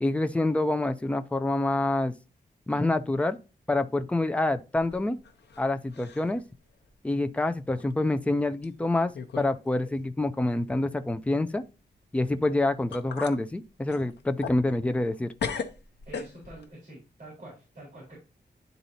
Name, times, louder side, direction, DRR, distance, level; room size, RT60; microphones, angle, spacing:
voice 1, 0.0-2.1 2.7-3.4 3.7-5.2 5.6-6.4 7.0-11.6 12.1-15.3, left 2 dB, 5° left, 0.4 m, -27 dB
sound 1, 4.7-5.6 5.9-6.4 6.8-6.9 7.8-7.9 8.6-8.7 9.1-9.6 9.8-9.9 12.5-12.6 12.9-13.4 13.9-15.1 15.4-16.7, left 6 dB, 85° left, 0.7 m, -37 dB
voice 2, 16.1-18.2, right 2 dB, 45° right, 4.1 m, -46 dB
10.5 x 4.0 x 2.7 m
wide cardioid pair, 160°, 17 cm